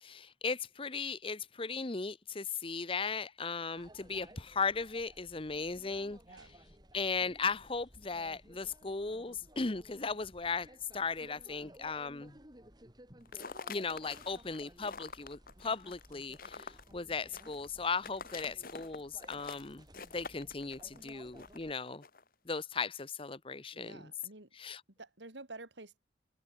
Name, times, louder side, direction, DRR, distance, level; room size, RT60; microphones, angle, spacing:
voice 1, 0.0-6.2 6.9-12.4 13.7-19.9 20.1-22.0 22.5-24.1 24.6-24.8, left 4 dB, 30° left, 0.9 m, -37 dB
sound 1, 3.8-21.7, right 1 dB, 25° right, 7.2 m, -58 dB
sound 2, 13.2-22.3, left 4 dB, 50° left, 1.8 m, -47 dB
voice 2, 23.7-24.5 24.9-26.0, right 2 dB, 80° right, 3.6 m, -50 dB
open air
head